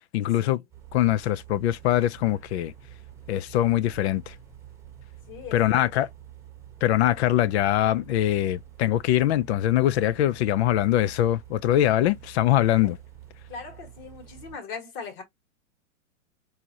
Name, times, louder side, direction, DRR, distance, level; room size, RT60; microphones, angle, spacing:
voice 1, 0.1-0.6 0.9-2.7 3.3-4.3 5.5-6.1 6.8-13.0, left 13 dB, 55° left, 0.5 m, -23 dB
sound 1, 0.7-14.6, right 11 dB, 5° right, 0.9 m, -48 dB
voice 2, 5.3-6.0 12.8-12.9 13.5-15.2, left 5 dB, 30° left, 1.5 m, -40 dB
4.8 x 2.8 x 2.7 m
hypercardioid pair, 140°, 41 cm